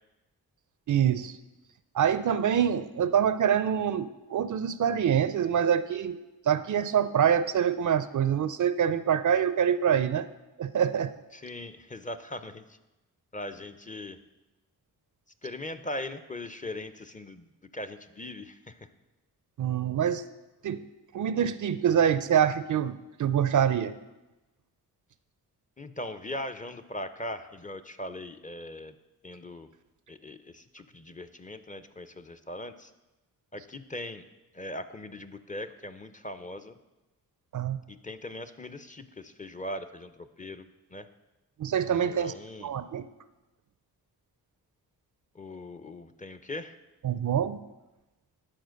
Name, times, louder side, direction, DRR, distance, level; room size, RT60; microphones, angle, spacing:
voice 1, 0.9-1.4 1.9-6.2 6.5-10.3 10.6-11.1 19.6-20.3 20.6-20.8 21.1-23.9 37.5-37.8 41.6-42.3 42.6-43.1 47.0-47.6, right 8 dB, 50° right, 13 dB, 0.5 m, -25 dB
voice 2, 11.3-12.8 13.3-14.2 15.4-18.9 25.8-28.9 29.2-29.7 30.1-32.9 33.5-34.2 34.5-36.8 37.9-41.1 41.9-42.7 45.3-46.8, left 1 dB, 20° left, 10 dB, 0.5 m, -40 dB
10.5 x 4.3 x 6.4 m, 1.0 s
cardioid pair, 60°, 38 cm